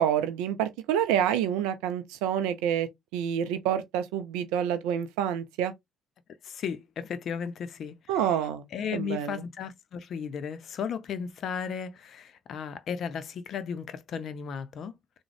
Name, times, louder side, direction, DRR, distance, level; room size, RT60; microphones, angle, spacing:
voice 1, 0.0-2.9 3.1-5.7 8.1-8.6 8.9-9.4, right 9 dB, 75° right, 0.4 m, -27 dB
voice 2, 6.4-8.4 8.7-14.9, left 7 dB, 55° left, 0.5 m, -35 dB
3.6 x 2.1 x 3.2 m
hypercardioid pair, 55°, 0 cm